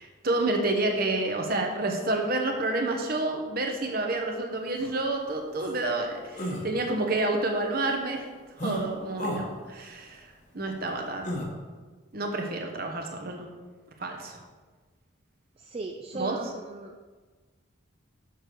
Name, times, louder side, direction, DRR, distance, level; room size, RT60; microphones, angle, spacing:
voice 1, 0.0-8.2 8.6-10.3 10.5-11.4 12.1-13.4 14.0-14.4 16.1-16.4, right 2 dB, 45° right, 3 dB, 1.0 m, -29 dB
sound 1, 4.8-4.9 5.6-5.8 6.3-6.7 8.6-8.8 9.2-9.4 11.2-11.5, equal, 35° left, 1.1 m, -32 dB
voice 2, 15.6-17.0, right 3 dB, 30° right, 4 dB, 0.3 m, -37 dB
6.6 x 6.5 x 4.7 m, 1.4 s
head